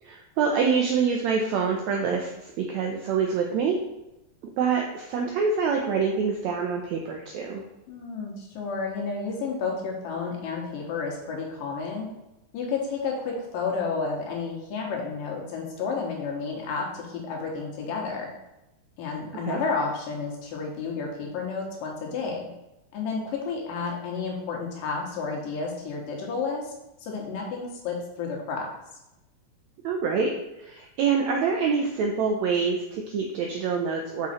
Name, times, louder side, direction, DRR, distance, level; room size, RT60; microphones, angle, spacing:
voice 1, 0.0-3.8 4.6-7.6 19.5-19.6 29.8-34.3, right 5 dB, 85° right, 2 dB, 1.5 m, -26 dB
voice 2, 7.9-12.1 12.5-18.3 19.0-22.5 22.9-26.7 27.0-28.7, left 4 dB, 75° left, -1 dB, 2.8 m, -31 dB
6.3 x 5.4 x 4.2 m, 0.93 s
omnidirectional pair, 4.0 m